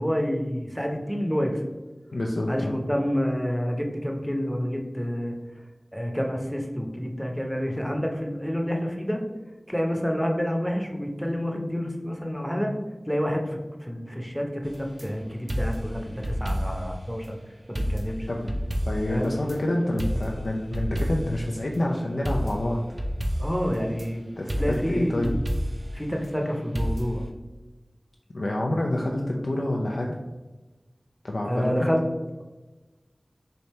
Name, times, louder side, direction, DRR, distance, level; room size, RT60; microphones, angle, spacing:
voice 1, 0.0-1.6 2.5-5.4 5.9-9.2 9.7-12.7 13.1-17.4 17.7-18.3 19.1-19.3 23.4-24.3 24.6-25.3 25.9-27.3 31.4-32.0, equal, ahead, 1 dB, 0.7 m, -28 dB
voice 2, 2.1-2.8 18.3-18.5 18.9-23.0 24.4-25.4 28.3-30.2 31.2-31.9, left 1 dB, 80° left, -1 dB, 0.4 m, -27 dB
sound 1, 14.7-15.1 15.5-16.9 17.2-17.3 17.8-19.6 20.0-21.4 22.3-24.1 24.5-25.9 26.8-27.3, equal, 40° right, 0.6 m, -29 dB
3.3 x 2.7 x 4.2 m, 1.2 s
wide cardioid pair, 45°, 0 cm